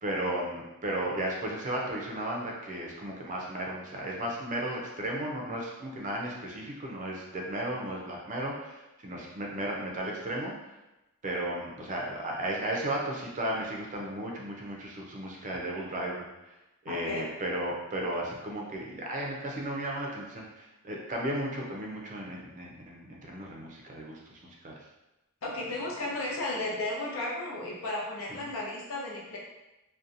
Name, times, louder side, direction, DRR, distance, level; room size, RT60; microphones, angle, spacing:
voice 1, 0.0-10.7 11.2-16.5 16.8-24.8 28.4-28.5, right 1 dB, 35° right, -2 dB, 0.5 m, -35 dB
voice 2, 16.9-17.3 25.4-29.4, left 2 dB, 65° left, -3 dB, 0.7 m, -34 dB
2.7 x 2.2 x 2.5 m, 0.99 s
head